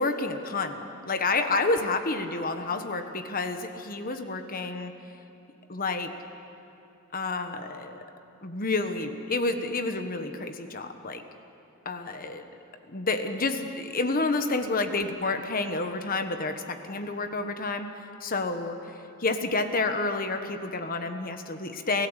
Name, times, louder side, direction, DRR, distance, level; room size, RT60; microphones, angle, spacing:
voice 1, 0.0-4.9 5.7-6.1 7.1-8.0 8.4-11.2 11.8-12.4 12.9-17.9 18.2-18.8 19.2-22.1, left 3 dB, 40° left, 7 dB, 1.3 m, -29 dB
29.5 x 16.0 x 8.1 m, 2.7 s
head